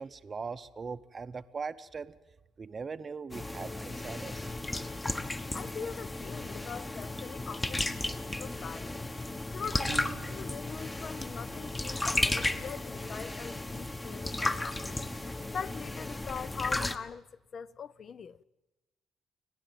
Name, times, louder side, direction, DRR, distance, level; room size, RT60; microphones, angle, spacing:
voice 1, 0.0-2.2 2.6-4.5, right 5 dB, 35° right, 0.7 m, -40 dB
sound 1, 3.3-17.0, left 2 dB, 20° left, 1.1 m, -34 dB
voice 2, 5.5-9.0 9.5-15.0 15.5-17.2 17.5-18.4, left 6 dB, 50° left, 0.7 m, -42 dB
Piano, 9.9-10.9, right 9 dB, 70° right, 0.7 m, -45 dB
29.0 x 10.5 x 9.1 m
cardioid pair, 90°, 0 cm